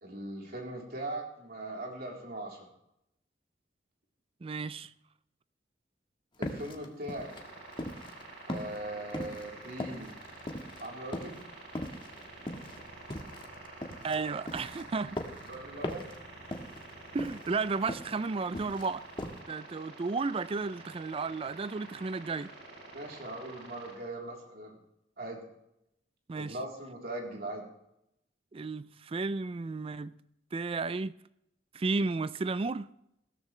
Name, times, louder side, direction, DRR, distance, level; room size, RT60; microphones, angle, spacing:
voice 1, 0.0-2.7 6.4-7.4 8.5-10.2 10.8-11.4 15.4-16.1 22.9-24.8 25.2-25.4 26.3-27.7, right 1 dB, 60° right, 3.7 m, -40 dB
voice 2, 4.4-4.9 14.0-15.2 17.1-19.0 19.5-22.5 26.3-26.5 28.5-30.2 30.5-31.1 31.7-32.9, right 4 dB, 30° right, 0.4 m, -33 dB
sound 1, 6.4-8.2 8.5-10.9 11.1-11.5 11.7-14.2 14.5-15.5 15.8-16.2 16.4-16.9 17.2-18.2 18.4-18.9 19.2-19.4, left 1 dB, 30° left, 1.5 m, -39 dB
sound 2, 7.2-23.9, right 2 dB, 85° right, 4.4 m, -48 dB
17.0 x 13.5 x 3.3 m
head